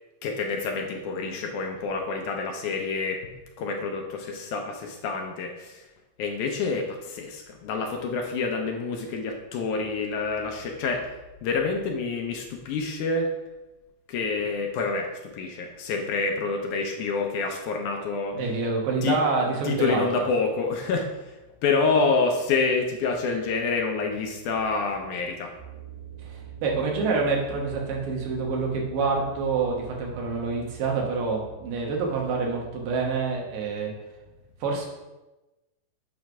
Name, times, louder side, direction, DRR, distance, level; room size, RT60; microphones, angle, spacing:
voice 1, 0.2-3.2 3.6-5.9 6.2-11.1 11.4-13.3 14.1-18.4 19.0-19.2 19.7-21.1 21.6-25.5, left 4 dB, 80° left, 3 dB, 2.0 m, -27 dB
voice 2, 18.3-20.3 26.2-33.9 34.6-34.9, right 4 dB, 85° right, -1 dB, 2.8 m, -27 dB
sound 1, 25.6-33.3, right 13 dB, 65° right, 2.4 m, -45 dB
7.4 x 3.1 x 5.9 m, 1.1 s
omnidirectional pair, 3.8 m